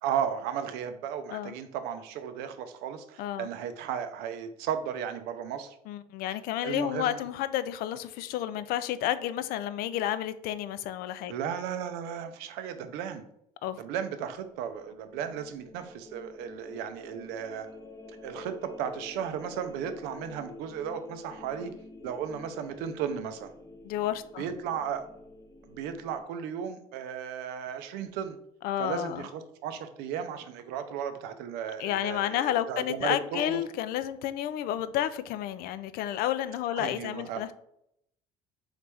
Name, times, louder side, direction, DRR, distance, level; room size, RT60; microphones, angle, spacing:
voice 1, 0.0-5.8 6.6-7.2 11.3-13.2 13.8-17.7 18.2-21.7 22.0-23.5 24.4-25.1 25.6-28.4 28.8-33.6 36.7-37.4, right 8 dB, 75° right, 9 dB, 0.5 m, -35 dB
voice 2, 5.9-11.3 13.6-13.8 23.8-24.5 28.6-29.3 31.8-37.5, left 12 dB, 65° left, 14 dB, 0.4 m, -31 dB
sound 1, 14.3-26.2, left 2 dB, 20° left, 0.8 m, -48 dB
4.0 x 3.2 x 3.3 m, 0.76 s
supercardioid pair, 80°, 17 cm